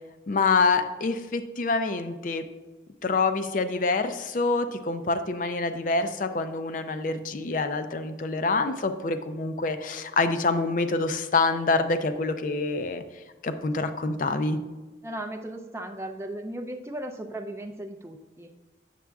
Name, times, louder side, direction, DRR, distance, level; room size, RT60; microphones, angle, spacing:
voice 1, 0.3-2.4 3.0-13.0 13.4-14.6, left 3 dB, 45° left, 10 dB, 0.4 m, -26 dB
voice 2, 15.0-18.6, right 1 dB, 15° right, 4 dB, 0.4 m, -36 dB
7.5 x 7.0 x 2.3 m, 1.2 s
head